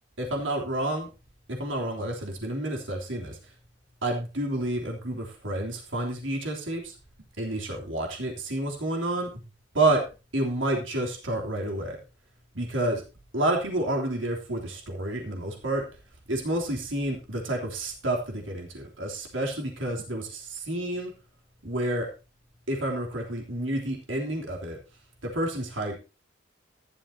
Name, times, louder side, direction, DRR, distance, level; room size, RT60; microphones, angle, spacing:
voice 1, 0.2-1.1 1.5-3.5 4.0-6.9 7.4-9.3 9.7-10.0 10.3-12.0 12.5-13.0 13.3-15.8 16.3-21.1 21.6-22.1 22.7-24.8 25.3-25.9, right 1 dB, 85° right, 0 dB, 3.2 m, -29 dB
15.0 x 12.0 x 2.8 m, 0.31 s
head